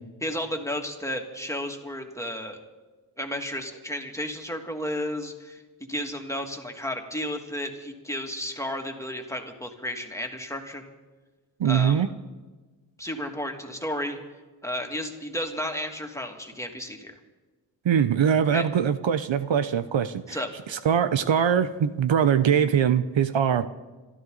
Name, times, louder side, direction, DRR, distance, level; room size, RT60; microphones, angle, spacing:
voice 1, 0.2-2.6 3.2-5.6 5.9-10.9 11.6-12.1 13.0-14.2 14.6-17.1 18.5-18.7 20.3-20.5, left 1 dB, 5° left, 2 dB, 2.7 m, -32 dB
voice 2, 11.6-12.1 17.8-20.4 20.7-23.7, right 8 dB, 70° right, 11 dB, 0.9 m, -22 dB
26.0 x 13.0 x 4.0 m, 1.2 s
cardioid pair, 45°, 47 cm